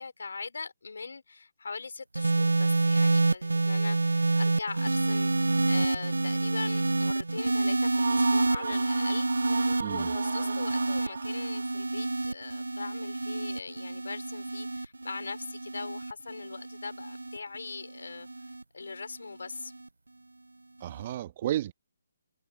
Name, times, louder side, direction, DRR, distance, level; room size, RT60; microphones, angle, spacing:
voice 1, 0.0-18.3 18.7-19.7, left 4 dB, 70° left, 4.5 m, -41 dB
sound 1, 2.1-18.6 19.5-19.9, right 2 dB, 85° right, 0.6 m, -28 dB
sound 2, 7.9-11.7, right 5 dB, 60° right, 2.7 m, -37 dB
voice 2, 9.8-10.1 20.8-21.7, right 12 dB, 35° right, 1.9 m, -32 dB
figure-of-eight pair, 145°, 0 cm